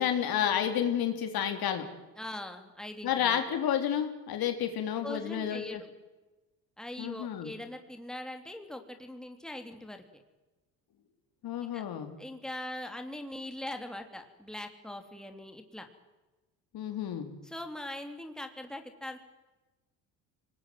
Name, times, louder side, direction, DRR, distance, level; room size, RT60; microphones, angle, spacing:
voice 1, 0.0-1.9 3.0-5.8 7.0-7.5 11.4-12.1 16.7-17.3, left 9 dB, 60° left, 6 dB, 3.5 m, -30 dB
voice 2, 2.2-3.4 5.0-5.9 6.8-10.0 11.7-11.8 12.2-15.9 17.4-19.2, left 1 dB, ahead, 5 dB, 3.3 m, -41 dB
25.0 x 20.0 x 9.4 m, 1.1 s
supercardioid pair, 85°, 40 cm